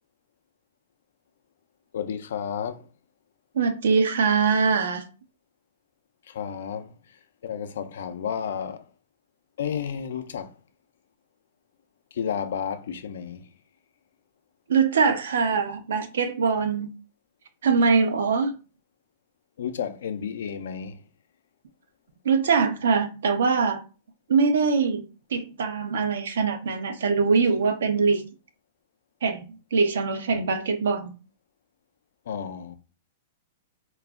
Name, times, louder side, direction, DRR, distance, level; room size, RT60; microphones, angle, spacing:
voice 1, 1.9-2.8 6.3-6.9 7.4-8.8 9.6-10.5 12.2-13.4 19.6-21.0 30.3-30.4 32.3-32.7, left 7 dB, 75° left, 0.4 m, -31 dB
voice 2, 3.5-5.0 14.7-16.9 17.6-18.5 22.2-23.8 24.3-25.0 25.3-28.2 29.2-29.4 29.7-31.2, right 5 dB, 80° right, 0.5 m, -22 dB
2.3 x 2.0 x 3.5 m
hypercardioid pair, 130°, 0 cm